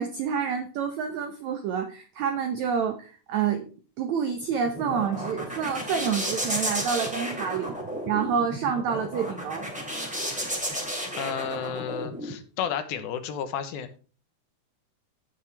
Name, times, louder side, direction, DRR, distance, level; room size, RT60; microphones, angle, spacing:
voice 1, 0.0-3.7 4.0-7.7 8.1-9.7, right 7 dB, 80° right, 6 dB, 1.6 m, -28 dB
sound 1, 4.4-12.3, equal, 5° right, 1.8 m, -33 dB
voice 2, 11.2-13.9, left 8 dB, 80° left, 10 dB, 2.7 m, -32 dB
16.0 x 5.4 x 3.3 m, 0.37 s
omnidirectional pair, 4.4 m